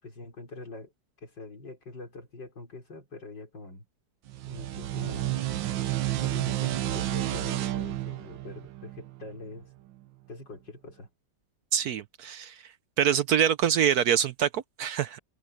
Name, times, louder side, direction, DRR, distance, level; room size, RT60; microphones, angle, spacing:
voice 1, 0.0-0.9 1.2-3.9 4.5-5.4 6.2-9.7 10.3-11.1, left 2 dB, 75° left, 6.1 m, -44 dB
sound 1, 4.3-9.6, right 14 dB, 85° right, 1.5 m, -31 dB
voice 2, 11.7-12.6 13.0-15.2, right 9 dB, 65° right, 1.1 m, -25 dB
omnidirectional pair, 2.0 m